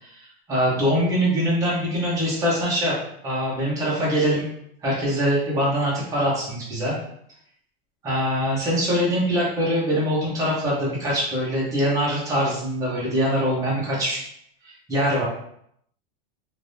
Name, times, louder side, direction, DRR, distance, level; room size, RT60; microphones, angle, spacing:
voice 1, 0.0-3.0 3.2-4.5 4.8-6.9 8.0-14.2 14.6-15.2, equal, 10° right, -7 dB, 0.8 m, -23 dB
2.7 x 2.6 x 3.3 m, 0.71 s
supercardioid pair, 175°, 31 cm